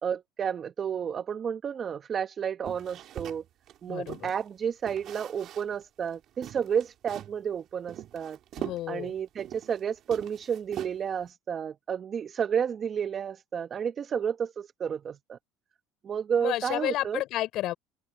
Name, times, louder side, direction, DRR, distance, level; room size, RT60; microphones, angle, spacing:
voice 1, 0.0-3.4 3.8-8.4 8.9-15.4 16.0-17.2, right 7 dB, 40° right, 1.2 m, -31 dB
sound 1, 2.6-4.4 4.9-5.8 6.1-6.2 6.4-7.4 7.9-9.8 10.1-11.2, right 12 dB, 55° right, 4.4 m, -42 dB
voice 2, 3.9-4.3 8.6-9.1 16.4-17.7, left 15 dB, 60° left, 4.8 m, -31 dB
open air
supercardioid pair, 90°, 0 cm